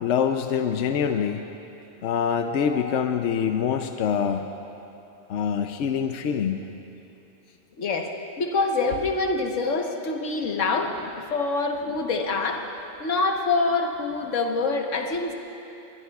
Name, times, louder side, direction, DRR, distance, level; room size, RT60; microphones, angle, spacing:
voice 1, 0.0-1.5 2.0-4.5 5.3-6.6, left 7 dB, 75° left, 6 dB, 0.9 m, -25 dB
voice 2, 7.8-12.6 13.0-15.3, left 3 dB, 90° left, 3 dB, 1.5 m, -26 dB
21.0 x 21.0 x 2.3 m, 2.9 s
omnidirectional pair, 1.2 m